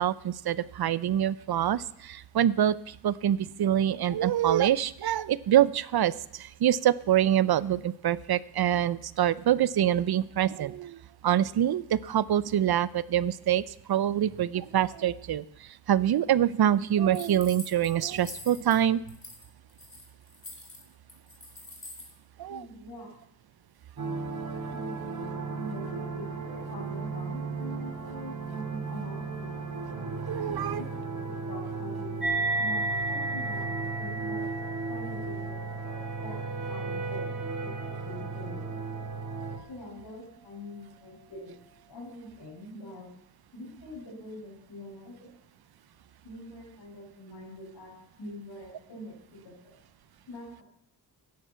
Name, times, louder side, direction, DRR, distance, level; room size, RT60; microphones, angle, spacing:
voice 1, 0.0-11.0 11.2-13.6 13.9-15.4 15.9-19.0 22.4-22.6 30.3-30.8, right 11 dB, 65° right, 19 dB, 0.7 m, -25 dB
sound 1, 17.1-18.8 19.1-19.4 19.7-22.1, left 2 dB, 35° left, 4.3 m, -45 dB
voice 2, 22.4-23.1 24.7-29.8 30.4-32.2 32.6-34.4 34.9-37.3 37.6-38.8 39.7-41.5 41.9-43.1 43.5-45.3 46.2-47.9 48.2-49.8 50.3-50.6, left 1 dB, 80° left, -6 dB, 5.9 m, -44 dB
sound 2, 24.0-39.6, right 4 dB, 50° right, 2.7 m, -35 dB
sound 3, 32.2-39.1, right 2 dB, ahead, 6.0 m, -34 dB
16.0 x 10.5 x 6.9 m, 0.77 s
wide cardioid pair, 110°, 40 cm